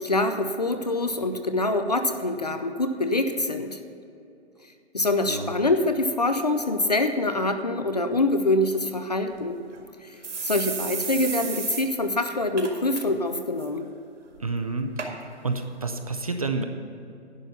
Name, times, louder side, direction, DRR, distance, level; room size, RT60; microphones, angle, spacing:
voice 1, 0.0-3.8 4.9-9.6 10.0-10.2 10.4-13.9, left 2 dB, 35° left, 8 dB, 0.4 m, -25 dB
sound 1, 9.3-9.4 9.7-9.8 10.2-11.9 12.2-12.3 12.6-13.0 13.4-13.7 14.4-14.5 15.0-15.1 15.8-15.9, right 5 dB, 90° right, 1.9 m, -32 dB
voice 2, 14.4-15.0 15.4-16.6, right 3 dB, 30° right, 6 dB, 0.5 m, -29 dB
11.0 x 5.6 x 8.0 m, 2.6 s
hypercardioid pair, 170°, 35 cm